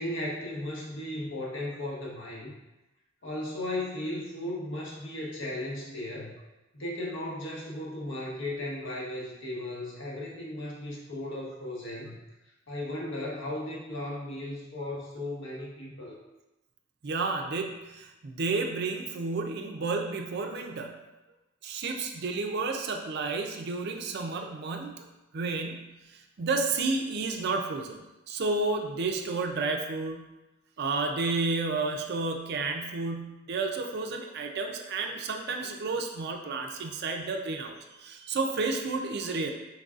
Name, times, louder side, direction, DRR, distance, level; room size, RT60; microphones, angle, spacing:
voice 1, 0.0-2.6 3.2-6.3 6.7-12.2 12.7-16.2, left 1 dB, 60° left, -3 dB, 1.0 m, -36 dB
voice 2, 17.0-21.0 21.6-28.0 28.3-30.3 30.8-39.5, right 3 dB, 50° right, 3 dB, 0.4 m, -31 dB
4.7 x 3.8 x 2.4 m, 1.0 s
head